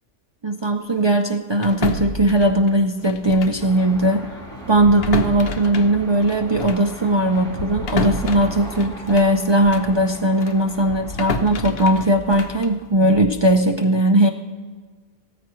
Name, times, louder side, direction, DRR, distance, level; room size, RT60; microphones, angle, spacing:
voice 1, 0.4-4.3 4.7-14.3, right 1 dB, 45° right, 3 dB, 0.3 m, -18 dB
sound 1, 1.6-3.7 3.9-4.1 4.7-10.0 10.4-13.5, left 3 dB, 60° left, 0.9 m, -30 dB
sound 2, 3.6-11.6, right 1 dB, 5° left, 2.7 m, -38 dB
16.0 x 13.5 x 3.1 m, 1.5 s
omnidirectional pair, 1.3 m